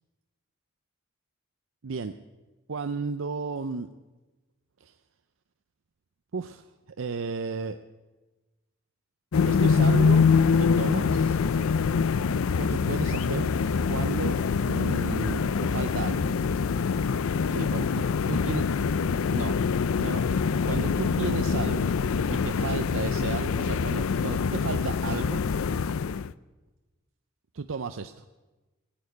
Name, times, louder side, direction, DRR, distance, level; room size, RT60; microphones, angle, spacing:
voice 1, 1.8-2.1 2.7-3.9 4.8-4.9 6.3-6.6 7.0-7.8 9.5-10.3 10.6-11.4 12.6-13.5 13.9-16.4 17.5-18.6 19.3-19.6 20.0-20.2 20.6-21.9 22.3-25.4 27.5-28.2, right 4 dB, 75° right, 8 dB, 0.6 m, -33 dB
sound 1, 9.3-26.3, left 5 dB, 85° left, 0.4 m, -25 dB
15.5 x 8.9 x 9.4 m, 1.2 s
head